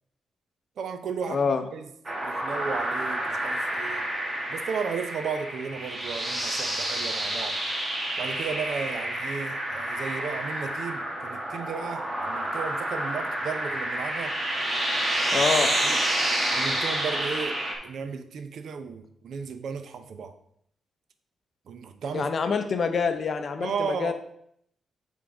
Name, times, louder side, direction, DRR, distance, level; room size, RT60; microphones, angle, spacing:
voice 1, 0.8-1.9 2.2-4.1 4.5-7.6 8.2-14.4 15.4-15.5 15.8-16.0 16.5-20.3 21.7-22.3 23.6-24.1, right 6 dB, 70° right, 0.6 m, -34 dB
voice 2, 1.3-1.6 15.3-15.8 22.1-24.1, left 5 dB, 50° left, 0.6 m, -26 dB
sound 1, 2.0-17.7, right 1 dB, 25° right, 1.4 m, -29 dB
5.8 x 3.7 x 4.9 m
cardioid pair, 115°, 0 cm